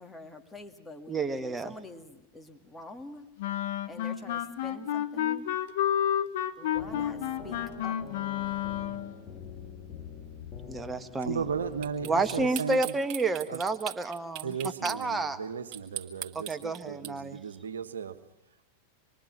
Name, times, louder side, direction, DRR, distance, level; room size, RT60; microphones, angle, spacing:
voice 1, 0.0-3.3 3.9-5.5 6.6-8.2, left 2 dB, 10° left, 5 dB, 2.3 m, -46 dB
voice 2, 1.1-1.7 10.7-11.4 12.1-14.5 14.8-15.4 16.5-17.4, right 3 dB, 15° right, 8 dB, 1.4 m, -30 dB
Wind instrument woodwind instrument, 3.4-9.1, left 10 dB, 55° left, 1.3 m, -30 dB
sound 1, 6.7-12.5, left 6 dB, 35° left, 4.6 m, -45 dB
voice 3, 11.2-12.9 13.5-13.6 14.4-18.2, right 6 dB, 70° right, 9 dB, 1.4 m, -35 dB
sound 2, 11.8-15.0 15.7-17.1, right 11 dB, 40° right, 2.2 m, -38 dB
26.5 x 22.5 x 6.1 m, 0.93 s
figure-of-eight pair, 90°, 0 cm